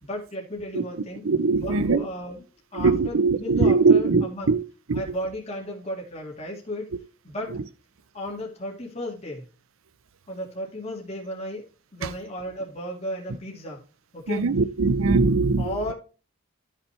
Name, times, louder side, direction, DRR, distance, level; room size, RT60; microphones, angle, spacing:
voice 1, 0.0-1.3 1.5-4.5 4.9-6.9 7.2-7.6 8.1-9.5 10.3-11.6 11.9-13.8 14.1-14.5 15.6-15.9, equal, 30° left, 2.2 m, -34 dB
voice 2, 1.2-2.0 2.7-4.6 4.9-5.0 12.0-12.1 14.3-15.9, right 4 dB, 75° right, 0.6 m, -21 dB
13.0 x 5.8 x 3.3 m
head